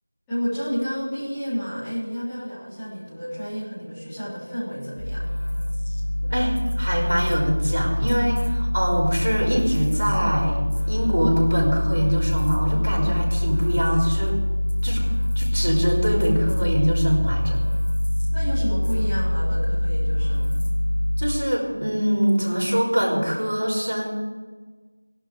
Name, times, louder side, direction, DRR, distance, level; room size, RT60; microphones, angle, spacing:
voice 1, 0.3-5.2 18.3-20.5, equal, 5° left, -20 dB, 4.5 m, -30 dB
sound 1, 5.0-21.5, equal, 60° left, 2.5 m, -24 dB
voice 2, 6.2-10.6 10.9-14.4 14.8-15.1 15.4-17.6 21.2-24.1, equal, 75° right, -2 dB, 5.2 m, -23 dB
18.0 x 11.5 x 4.9 m, 1.4 s
figure-of-eight pair, 175°, 0 cm